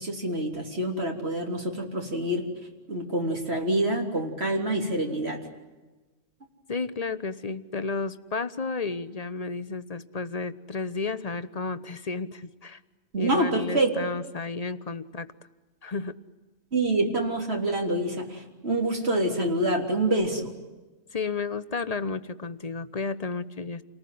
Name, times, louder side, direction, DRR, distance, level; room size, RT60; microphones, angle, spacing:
voice 1, 0.0-2.4 2.9-5.4 13.1-14.0 16.7-20.5, right 1 dB, 55° right, 2 dB, 3.8 m, -26 dB
voice 2, 6.7-12.8 13.2-15.3 15.8-16.2 21.1-23.8, left 4 dB, 35° left, 14 dB, 1.0 m, -32 dB
28.5 x 19.5 x 9.4 m, 1.2 s
omnidirectional pair, 1.3 m